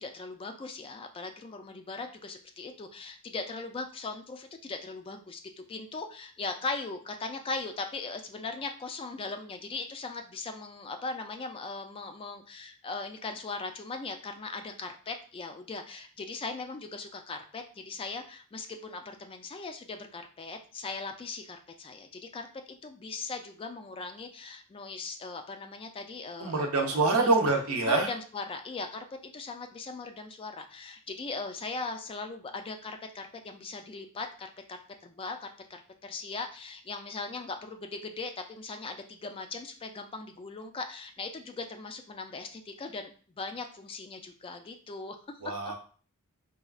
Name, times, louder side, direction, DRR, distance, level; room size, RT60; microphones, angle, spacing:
voice 1, 0.0-27.3 27.8-45.7, left 3 dB, 25° left, 6 dB, 0.3 m, -39 dB
voice 2, 26.4-28.1 45.4-45.7, right 3 dB, 80° right, 3 dB, 0.7 m, -25 dB
4.1 x 2.3 x 2.4 m, 0.41 s
head